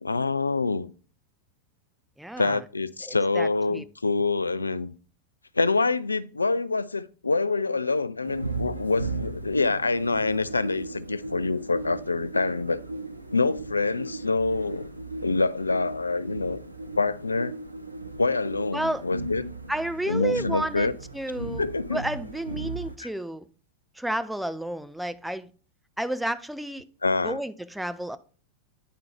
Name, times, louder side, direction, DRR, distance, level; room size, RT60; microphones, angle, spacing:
voice 1, 0.0-0.9 2.4-4.9 5.6-12.8 13.3-14.9 15.2-16.6 16.9-17.6 18.2-19.5 20.1-20.9 21.6-22.0 27.0-27.4, left 3 dB, 80° left, 0.3 m, -26 dB
voice 2, 2.2-2.6 3.0-3.8 18.7-19.0 19.7-21.6 21.9-23.5 23.9-25.5 26.0-26.8 27.2-28.2, right 1 dB, 5° right, 0.4 m, -31 dB
sound 1, 8.2-23.0, right 2 dB, 85° right, 0.5 m, -36 dB
9.1 x 3.8 x 4.3 m
figure-of-eight pair, 90°, 0 cm